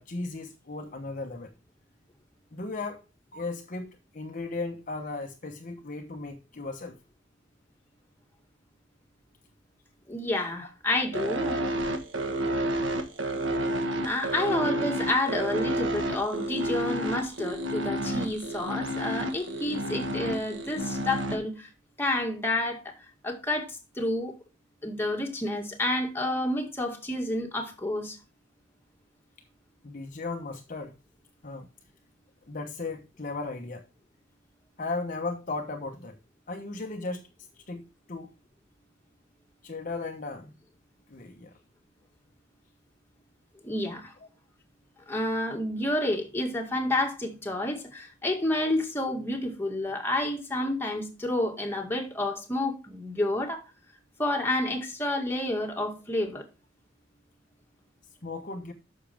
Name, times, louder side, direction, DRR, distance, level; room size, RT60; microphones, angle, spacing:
voice 1, 0.0-1.5 2.5-3.0 3.3-7.0 29.8-30.9 31.4-31.7 32.5-33.8 34.8-36.1 36.5-37.2 37.7-38.3 39.6-40.5 41.1-41.5 58.2-58.7, left 3 dB, 45° left, 1.0 m, -36 dB
voice 2, 10.1-11.7 14.0-21.7 22.0-22.9 23.2-24.4 24.8-28.2 43.6-44.1 45.1-53.6 54.2-56.5, left 1 dB, 10° left, 1.9 m, -29 dB
sound 1, 11.1-21.4, right 1 dB, 75° right, 1.5 m, -30 dB
10.0 x 6.5 x 3.5 m
head